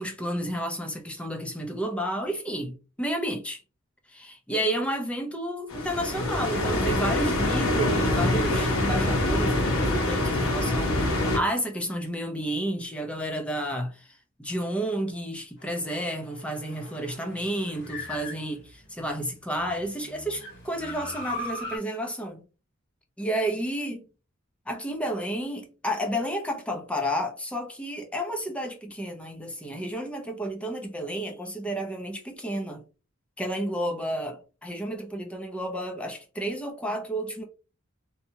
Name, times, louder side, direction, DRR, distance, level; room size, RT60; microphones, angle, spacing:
voice 1, 0.0-3.6 4.1-14.1 14.4-22.4 23.2-24.0 24.7-32.8 33.4-37.4, right 1 dB, 5° left, 0.4 m, -31 dB
sound 1, 5.7-11.4, left 1 dB, 75° left, 0.8 m, -25 dB
sound 2, 15.6-19.0 19.5-21.8, left 2 dB, 55° left, 1.3 m, -40 dB
2.7 x 2.2 x 2.7 m
head